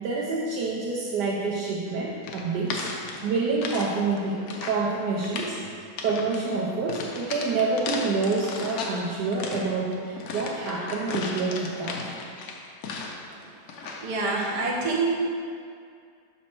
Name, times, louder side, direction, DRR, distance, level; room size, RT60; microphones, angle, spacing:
voice 1, 0.0-5.6 6.0-12.1, right 3 dB, 75° right, -4 dB, 1.2 m, -27 dB
sound 1, 2.2-3.9 4.2-4.9 5.2-5.6 6.0-6.4 6.9-9.0 9.3-13.3 13.7-14.1, left 4 dB, 65° left, 1.1 m, -35 dB
voice 2, 14.0-15.1, right 3 dB, 45° right, -2 dB, 0.4 m, -27 dB
6.1 x 4.2 x 4.3 m, 2.2 s
omnidirectional pair, 1.9 m